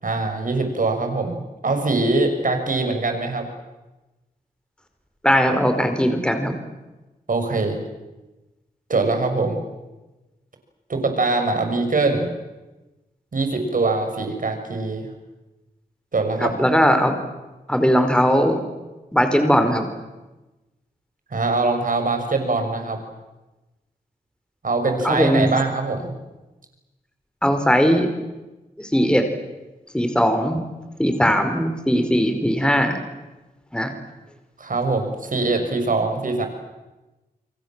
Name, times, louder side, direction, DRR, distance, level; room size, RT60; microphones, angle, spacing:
voice 1, 0.0-3.4 7.3-7.8 8.9-9.6 10.9-12.3 13.3-15.1 16.1-16.5 21.3-23.0 24.6-26.1 34.6-36.5, right 3 dB, 55° right, 6 dB, 6.5 m, -23 dB
voice 2, 5.2-6.6 16.4-17.1 17.7-18.6 19.1-19.9 25.0-25.5 27.4-28.1 28.8-29.3 29.9-30.6 31.0-33.0 33.7-33.9, equal, 5° left, 6 dB, 4.8 m, -19 dB
29.5 x 24.0 x 7.5 m, 1.1 s
cardioid pair, 50°, 16 cm